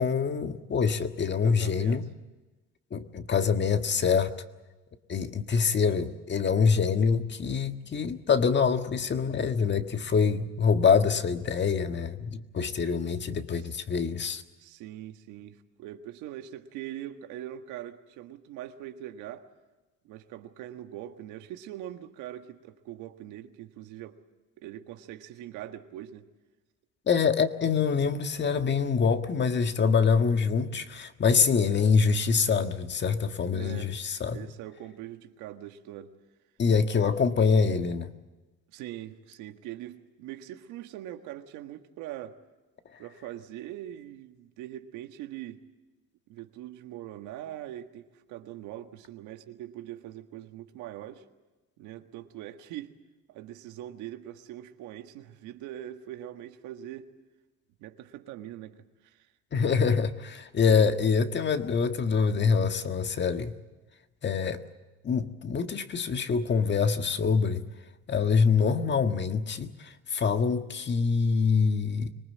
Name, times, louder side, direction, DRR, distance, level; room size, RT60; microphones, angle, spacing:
voice 1, 0.0-2.1 2.9-4.3 5.1-14.4 27.1-34.4 36.6-38.1 59.5-63.5 64.2-64.6 65.0-67.6 68.1-72.1, left 5 dB, 35° left, 7 dB, 1.6 m, -25 dB
voice 2, 1.4-2.0 13.6-13.7 14.6-19.5 20.0-24.2 24.6-26.3 33.5-33.9 34.3-36.1 38.7-42.4 43.0-45.6 46.3-51.2 51.8-52.9 53.3-57.1 57.8-58.7 59.0-59.3, right 12 dB, 80° right, 7 dB, 1.6 m, -42 dB
25.0 x 19.5 x 8.5 m, 1.2 s
supercardioid pair, 90°, 30 cm